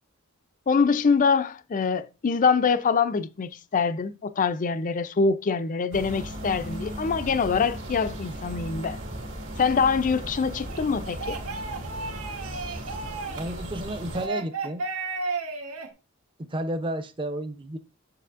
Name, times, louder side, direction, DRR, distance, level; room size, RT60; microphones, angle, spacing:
voice 1, 0.7-9.0 9.6-11.4, left 5 dB, 35° left, 0.4 m, -24 dB
sound 1, 5.9-14.3, right 1 dB, 55° right, 2.0 m, -36 dB
sound 2, 10.7-13.6 14.1-15.9, right 3 dB, 80° right, 1.1 m, -33 dB
voice 2, 13.4-14.8 16.4-17.8, right 1 dB, 20° right, 0.6 m, -32 dB
7.5 x 6.8 x 2.5 m
head